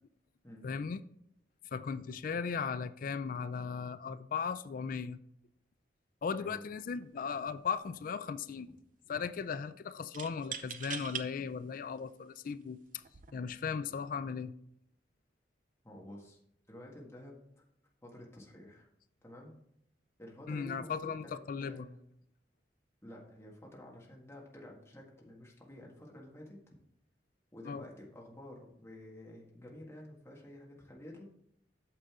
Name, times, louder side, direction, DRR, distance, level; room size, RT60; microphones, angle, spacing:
voice 1, 0.6-1.0 1.7-5.2 6.2-8.7 9.1-12.8 13.3-14.5 20.5-21.9 27.6-27.8, left 6 dB, 50° left, 0.3 m, -37 dB
sound 1, 7.0-7.2 7.6-8.2 10.1-11.3 12.0-12.1 13.0-13.3, right 8 dB, 50° right, 0.6 m, -42 dB
voice 2, 15.8-16.4 16.7-17.6 18.0-18.9 19.2-19.5 20.2-22.0 23.0-26.6 27.5-31.2, left 1 dB, 15° left, 1.7 m, -50 dB
8.9 x 6.7 x 3.6 m
head